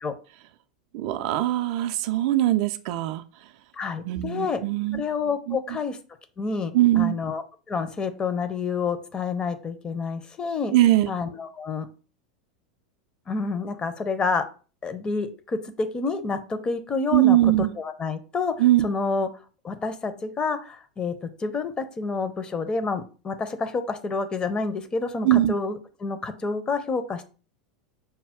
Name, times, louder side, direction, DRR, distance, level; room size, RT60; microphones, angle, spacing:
voice 1, 0.9-3.2 4.0-5.0 5.5-5.6 6.7-7.1 10.7-11.1 17.1-17.7 18.6-18.9 25.2-25.5, right 14 dB, 50° right, 10 dB, 0.3 m, -21 dB
voice 2, 3.8-4.6 4.9-6.0 6.4-10.7 11.1-11.9 13.3-14.5 14.8-18.6 18.8-19.3 19.6-27.2, left 4 dB, 20° left, 10 dB, 0.6 m, -28 dB
5.4 x 2.3 x 3.5 m, 0.36 s
figure-of-eight pair, 85°, 4 cm